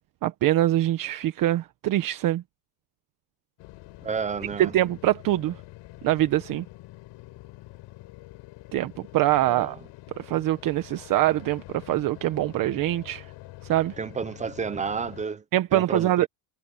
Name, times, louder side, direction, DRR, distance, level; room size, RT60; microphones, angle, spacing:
voice 1, 0.2-2.4 4.6-5.5 6.0-6.6 8.7-9.8 10.2-13.2 13.7-13.9 15.5-16.3, right 14 dB, 40° right, 1.1 m, -24 dB
sound 1, 3.6-15.2, left 18 dB, 55° left, 5.8 m, -46 dB
voice 2, 4.0-4.7 9.4-9.8 14.0-15.4 15.7-16.3, right 5 dB, 15° right, 0.6 m, -31 dB
cardioid pair, 165°, 49 cm